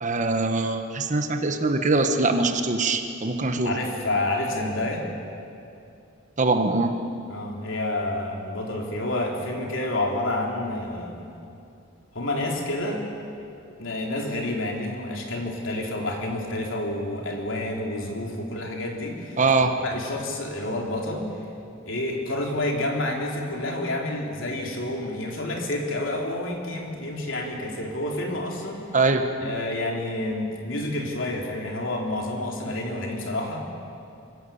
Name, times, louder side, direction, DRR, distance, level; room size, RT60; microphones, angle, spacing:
voice 1, 0.0-3.7 6.4-6.9 19.4-19.7 28.9-29.3, right 3 dB, 40° right, 6 dB, 1.3 m, -22 dB
voice 2, 3.6-5.1 7.3-11.3 12.1-13.0 13.8-19.4 19.8-21.3 21.9-28.8 29.4-33.6, left 1 dB, 70° left, 0 dB, 3.4 m, -29 dB
25.0 x 17.0 x 7.2 m, 2.6 s
head